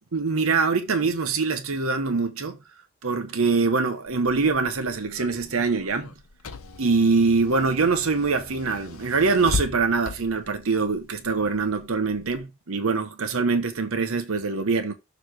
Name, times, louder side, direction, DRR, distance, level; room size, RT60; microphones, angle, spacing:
voice 1, 0.1-2.6 3.0-6.1 6.8-14.9, right 4 dB, 70° right, 0.9 m, -24 dB
Car / Engine, 4.1-12.4, left 4 dB, 75° left, 0.9 m, -38 dB
6.7 x 3.2 x 5.8 m
head